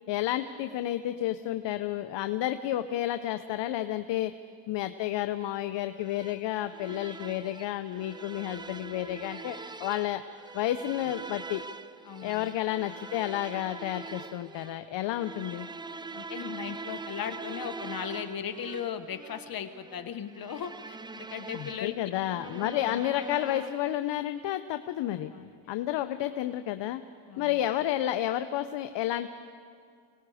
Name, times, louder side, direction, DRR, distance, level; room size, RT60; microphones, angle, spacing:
voice 1, 0.1-4.3 4.7-10.2 10.5-11.6 12.2-15.7 21.5-25.3 25.7-27.0 27.4-29.3, left 13 dB, 60° left, 10 dB, 0.8 m, -31 dB
sound 1, 6.0-24.0, right 3 dB, 10° right, 0.4 m, -43 dB
voice 2, 12.0-12.5 16.1-22.1 22.6-23.0 25.3-25.5 27.3-27.7, left 8 dB, 45° left, 8 dB, 1.3 m, -38 dB
27.5 x 19.0 x 5.0 m, 2.3 s
cardioid pair, 105°, 48 cm